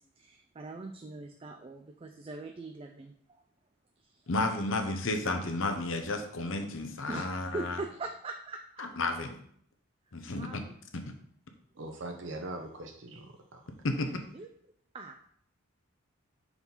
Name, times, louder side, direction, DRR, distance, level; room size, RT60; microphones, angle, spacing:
voice 1, 0.0-3.4 4.0-4.2 7.1-8.6 10.3-10.6 14.3-14.5 14.9-15.2, right 3 dB, 25° right, 4 dB, 0.3 m, -42 dB
voice 2, 4.3-7.8 8.8-9.3 10.1-10.6 10.9-11.0 13.8-14.1, left 2 dB, 70° left, 6 dB, 0.8 m, -32 dB
voice 3, 11.8-13.6, right 2 dB, 60° right, 3 dB, 0.6 m, -41 dB
4.7 x 4.0 x 5.4 m, 0.66 s
head